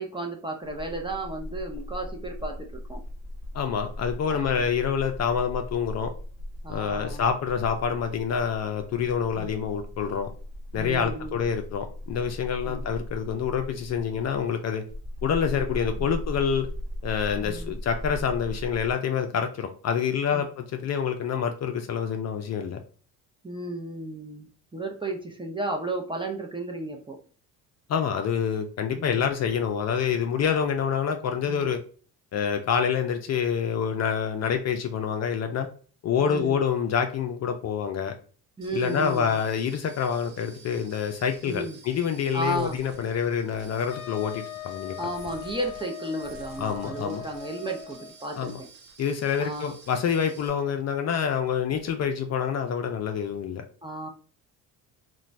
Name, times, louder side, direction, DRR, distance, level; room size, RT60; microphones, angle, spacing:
voice 1, 0.0-3.0 4.3-4.7 6.6-7.2 9.4-9.5 10.7-11.4 12.7-12.9 16.0-16.1 17.4-17.8 20.3-20.5 23.4-27.2 29.0-29.3 31.4-31.7 36.2-36.6 38.6-39.4 41.4-41.8 42.3-42.8 45.0-48.7 49.4-49.7 53.8-54.1, right 2 dB, 10° right, 2 dB, 0.6 m, -34 dB
sound 1, 0.6-18.9, left 1 dB, 40° right, 1.1 m, -38 dB
voice 2, 3.5-6.1 6.7-10.3 10.7-14.8 15.2-16.7 17.0-22.8 27.9-31.8 32.3-35.7 36.0-38.2 38.7-45.0 46.6-47.2 48.4-48.5 49.0-53.6, left 7 dB, 40° left, 6 dB, 0.5 m, -27 dB
sound 2, 38.6-50.5, right 4 dB, 85° right, 0.7 m, -51 dB
Wind instrument woodwind instrument, 43.9-48.3, left 10 dB, 90° left, 0.5 m, -40 dB
2.9 x 2.2 x 2.5 m, 0.42 s
hypercardioid pair, 65°, 41 cm